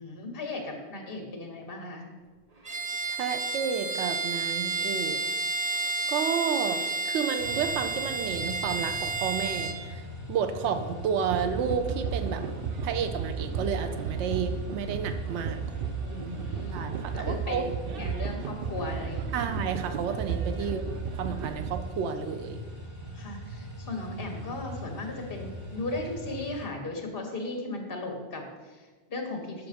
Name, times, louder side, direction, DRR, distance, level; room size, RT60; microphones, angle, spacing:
voice 1, 0.0-2.1 16.0-19.5 20.6-20.7 23.1-29.7, left 2 dB, 55° left, 3 dB, 1.5 m, -37 dB
Bowed string instrument, 2.6-9.8, right 3 dB, 35° right, 1.0 m, -31 dB
voice 2, 3.2-5.2 6.1-12.4 12.8-15.6 16.7-17.7 19.3-20.8 21.2-22.6, right 7 dB, 90° right, 8 dB, 0.9 m, -31 dB
sound 1, 7.4-26.7, equal, 30° left, 1.8 m, -41 dB
sound 2, 11.3-21.8, right 6 dB, 65° right, 0.7 m, -34 dB
7.0 x 5.6 x 5.1 m, 1.4 s
omnidirectional pair, 1.1 m